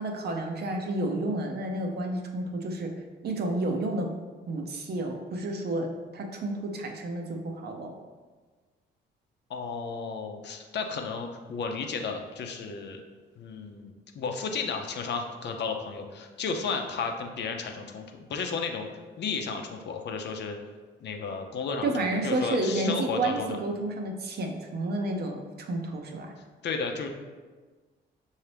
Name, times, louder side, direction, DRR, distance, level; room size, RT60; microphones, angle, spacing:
voice 1, 0.0-2.9 3.2-4.1 4.5-5.9 6.1-7.9 21.8-26.3, right 2 dB, 55° right, 2 dB, 0.7 m, -30 dB
voice 2, 9.5-13.0 13.4-18.9 19.2-20.5 21.0-21.9 22.2-23.6 26.6-27.1, left 5 dB, 60° left, 4 dB, 0.6 m, -33 dB
5.7 x 2.7 x 3.3 m, 1.4 s
cardioid pair, 90°, 20 cm